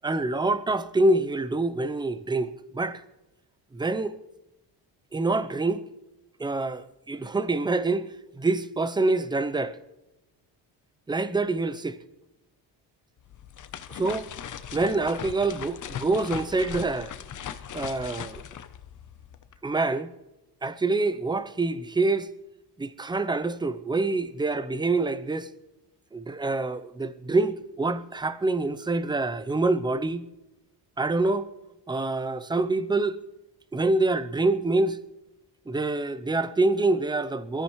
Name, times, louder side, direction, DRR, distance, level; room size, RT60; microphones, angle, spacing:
voice 1, 0.0-3.0 3.7-4.2 5.1-5.8 6.4-8.1 8.4-9.8 11.1-12.0 13.9-14.3 14.7-17.1 17.7-18.4 19.6-20.1 20.6-22.3 22.8-25.5 26.1-30.2 31.0-31.5 31.9-33.2 33.7-35.0 35.7-37.6, right 2 dB, 10° right, 0.6 m, -26 dB
sound 1, 13.2-19.6, left 9 dB, 45° left, 0.9 m, -39 dB
23.0 x 13.5 x 3.2 m
cardioid pair, 145°, 42 cm